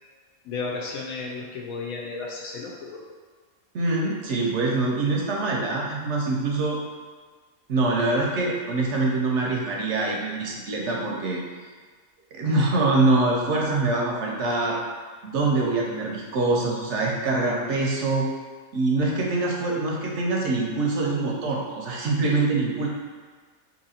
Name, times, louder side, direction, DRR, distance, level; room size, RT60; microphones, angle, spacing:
voice 1, 0.4-3.0, left 4 dB, 80° left, -1 dB, 1.1 m, -33 dB
voice 2, 3.7-6.8 7.7-11.4 12.3-14.8 15.2-18.3 18.7-22.9, right 2 dB, 65° right, -2 dB, 0.8 m, -24 dB
2.8 x 2.8 x 4.1 m, 1.5 s
omnidirectional pair, 1.5 m